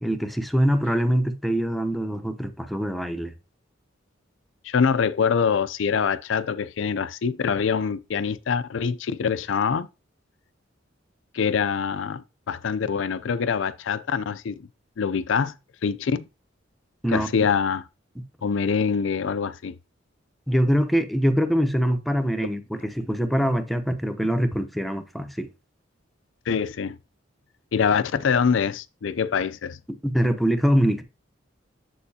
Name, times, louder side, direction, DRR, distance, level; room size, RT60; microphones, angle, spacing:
voice 1, 0.0-3.3 17.0-17.5 20.5-25.5 29.9-31.0, equal, ahead, 0.7 m, -23 dB
voice 2, 4.6-9.9 11.3-14.7 15.0-15.5 15.8-16.2 17.1-17.8 18.4-19.8 26.5-27.0 27.7-29.8, left 6 dB, 75° left, 0.4 m, -24 dB
7.5 x 6.7 x 2.8 m
head